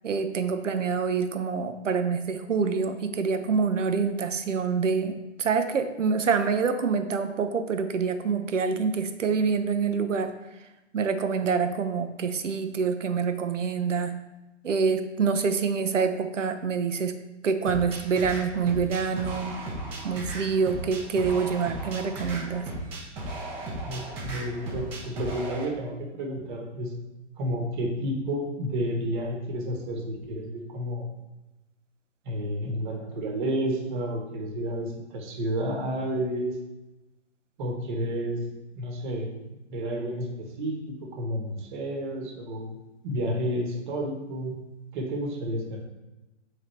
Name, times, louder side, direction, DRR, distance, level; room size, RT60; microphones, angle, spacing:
voice 1, 0.0-10.3 10.9-14.1 14.6-17.2 17.4-19.6 20.0-22.7, right 5 dB, 85° right, 8 dB, 0.6 m, -26 dB
sound 1, 17.7-25.7, right 1 dB, 15° right, 0.6 m, -36 dB
voice 2, 23.8-26.9 27.4-31.1 32.2-36.6 37.6-38.4 38.8-39.3 39.7-42.8 43.0-44.5 44.9-45.8, equal, 40° right, 1 dB, 1.1 m, -31 dB
3.7 x 3.4 x 4.2 m, 1.0 s
figure-of-eight pair, 125°, 36 cm